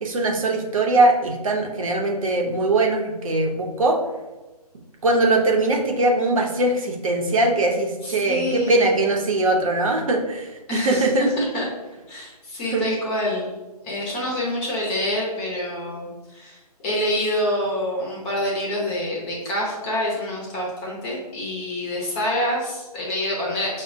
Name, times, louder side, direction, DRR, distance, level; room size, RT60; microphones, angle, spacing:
voice 1, 0.0-4.0 5.0-11.3 12.7-12.8, right 2 dB, 55° right, 1 dB, 0.7 m, -21 dB
voice 2, 8.0-9.0 10.7-11.7 12.1-13.5 13.8-16.6 16.8-23.8, left 1 dB, 15° left, -3 dB, 0.6 m, -26 dB
5.4 x 2.1 x 2.6 m, 1.1 s
figure-of-eight pair, 145°, 21 cm